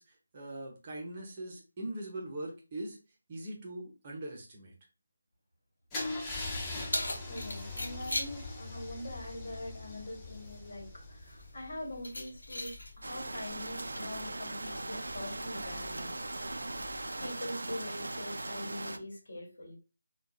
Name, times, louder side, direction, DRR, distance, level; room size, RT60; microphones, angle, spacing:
voice 1, 0.0-3.0 3.3-4.7, right 1 dB, 30° right, -1 dB, 0.8 m, -41 dB
Car / Engine starting / Idling, 5.9-11.8, left 2 dB, 15° left, 0.6 m, -41 dB
Keys jangling, 6.4-17.3, left 1 dB, 75° left, 0.8 m, -43 dB
voice 2, 7.2-16.2 17.2-19.7, left 1 dB, 60° left, 0 dB, 1.3 m, -43 dB
sound 1, 13.0-19.0, right 2 dB, 75° right, 0.4 m, -39 dB
3.6 x 2.3 x 2.2 m, 0.31 s
figure-of-eight pair, 160°, 0 cm